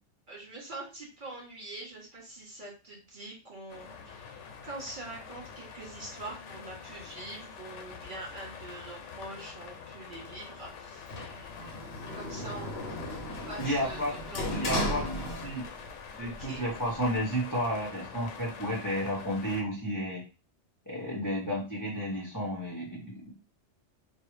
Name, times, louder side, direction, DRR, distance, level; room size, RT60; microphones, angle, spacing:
voice 1, 0.3-13.0 13.5-14.5 16.4-16.6, right 2 dB, 45° right, -3 dB, 1.4 m, -44 dB
Rain-On-The-Roof, 3.7-19.6, left 6 dB, 90° left, 1.0 m, -46 dB
Sliding door, 11.1-15.9 16.2-17.2, left 1 dB, 60° left, 1.0 m, -35 dB
voice 2, 13.6-14.1 14.6-15.7 16.2-20.2 20.9-23.3, equal, 15° left, -5 dB, 1.1 m, -32 dB
4.7 x 2.4 x 3.2 m, 0.32 s
omnidirectional pair, 1.2 m